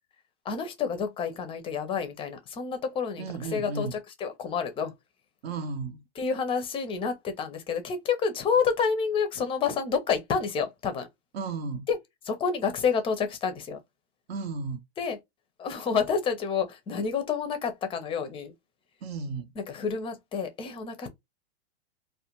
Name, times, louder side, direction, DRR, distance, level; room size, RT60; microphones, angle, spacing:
voice 1, 0.5-4.9 6.2-11.1 11.9-12.0 12.3-13.8 15.0-15.2 15.6-18.5 19.6-21.1, left 6 dB, 15° left, 0.5 m, -29 dB
voice 2, 3.2-4.0 5.4-6.0 11.3-11.9 14.3-14.8 19.0-19.5, right 4 dB, 65° right, 0.7 m, -34 dB
2.4 x 2.2 x 2.8 m
hypercardioid pair, 125°, 33 cm